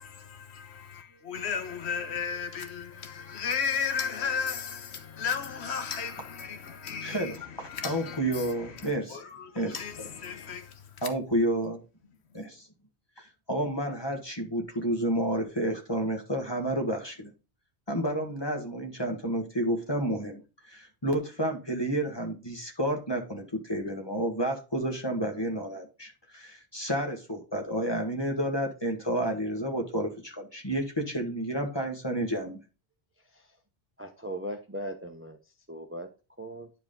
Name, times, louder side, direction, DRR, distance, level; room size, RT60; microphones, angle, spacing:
voice 1, 0.0-11.1, left 6 dB, 75° left, 1.3 m, -35 dB
voice 2, 7.0-9.3 9.5-10.1 11.0-11.8 12.3-12.7 13.2-17.3 17.9-20.4 20.7-32.6, right 1 dB, 25° left, 1.7 m, -30 dB
voice 3, 34.0-35.4 35.7-36.1 36.4-36.7, equal, 15° right, 0.9 m, -38 dB
10.5 x 4.8 x 3.9 m
omnidirectional pair, 1.1 m